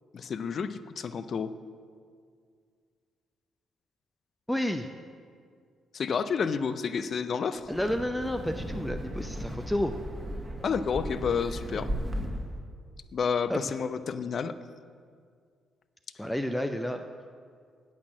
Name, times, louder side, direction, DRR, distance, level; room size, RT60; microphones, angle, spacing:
voice 1, 0.1-1.5 5.9-7.7 10.6-11.9 13.1-14.6, left 6 dB, 50° left, 13 dB, 0.5 m, -30 dB
voice 2, 4.5-4.9 7.7-9.9 13.5-13.6 16.2-17.0, left 1 dB, 5° left, 7 dB, 0.6 m, -30 dB
Wind, 7.6-12.6, equal, 20° right, 1.3 m, -36 dB
8.5 x 6.4 x 7.3 m, 2.1 s
hypercardioid pair, 45°, 0 cm